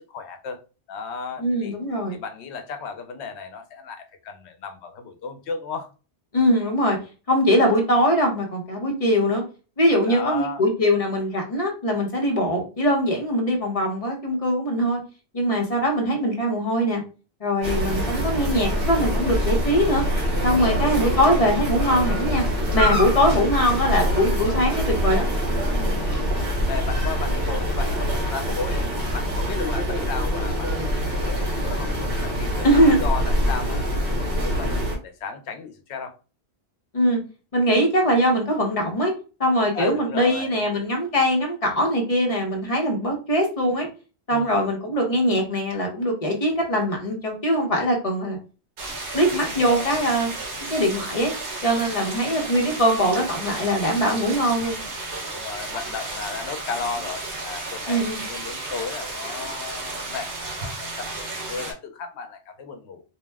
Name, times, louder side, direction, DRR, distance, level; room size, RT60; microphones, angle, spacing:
voice 1, 0.1-0.6 0.9-1.8 2.1-5.9 10.1-10.6 20.5-20.8 26.0-26.3 26.7-33.8 34.2-36.1 39.7-40.7 44.3-44.6 49.4-50.1 52.2-52.6 55.3-63.0, left 5 dB, 80° left, 0.9 m, -34 dB
voice 2, 1.4-2.2 6.3-7.0 7.3-9.4 9.8-15.0 15.3-17.0 17.4-20.0 20.4-22.4 22.7-25.3 25.7-25.9 32.6-33.0 36.9-37.2 37.5-39.1 39.4-43.9 44.3-48.4 49.1-50.3 50.7-51.3 51.6-54.8 57.9-58.2, equal, 35° left, 0.9 m, -22 dB
sound 1, 17.6-35.0, equal, 60° right, 1.2 m, -24 dB
sound 2, 48.8-61.7, right 2 dB, 85° right, 1.2 m, -33 dB
2.8 x 2.1 x 3.3 m
omnidirectional pair, 1.1 m